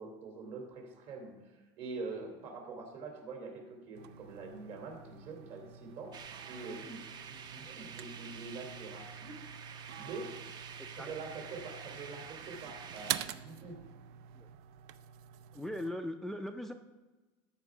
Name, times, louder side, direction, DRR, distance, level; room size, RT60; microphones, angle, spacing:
voice 1, 0.0-6.1 6.5-9.4 10.0-10.3 10.9-13.8, right 3 dB, 50° right, 2 dB, 2.9 m, -45 dB
sound 1, 3.9-15.9, right 11 dB, 70° right, 0.5 m, -46 dB
sound 2, 6.1-13.3, right 6 dB, 30° right, 0.7 m, -48 dB
voice 2, 15.5-16.7, left 1 dB, ahead, 6 dB, 0.4 m, -39 dB
13.5 x 5.1 x 4.8 m, 1.2 s
supercardioid pair, 130°, 13 cm